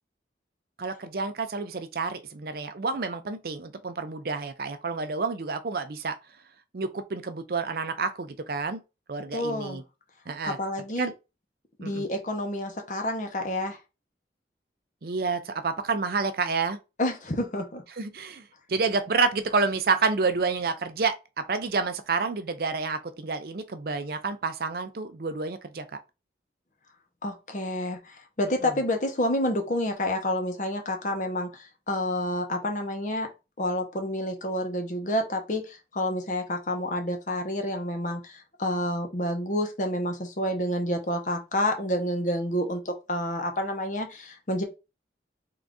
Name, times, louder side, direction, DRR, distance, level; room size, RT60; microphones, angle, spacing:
voice 1, 0.8-6.2 6.7-8.8 9.1-9.8 10.3-10.6 11.0-11.1 11.8-12.1 15.0-16.8 18.0-26.0 28.6-28.8, right 4 dB, 55° right, 0.5 m, -29 dB
voice 2, 9.3-9.8 10.4-11.1 11.8-13.8 17.0-17.8 27.2-33.3 33.6-44.6, left 1 dB, 45° left, 0.8 m, -29 dB
3.7 x 2.6 x 3.5 m
head